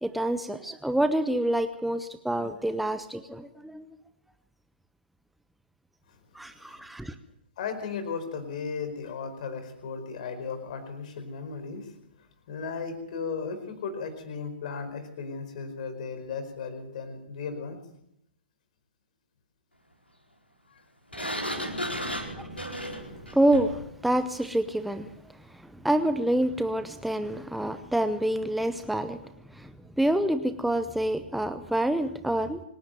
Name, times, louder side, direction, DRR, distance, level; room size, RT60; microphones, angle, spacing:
voice 1, 0.0-3.9 6.3-7.1 21.2-22.5 22.9-23.0 23.3-25.1 25.5-29.2 29.5-32.6, right 1 dB, ahead, 10 dB, 0.8 m, -28 dB
voice 2, 7.6-11.9 12.5-17.8 22.1-22.2, left 5 dB, 45° left, 8 dB, 4.9 m, -36 dB
Sliding door, 21.1-23.9, equal, 85° left, 4.7 m, -34 dB
25.5 x 11.0 x 9.2 m, 0.80 s
figure-of-eight pair, 120°, 6 cm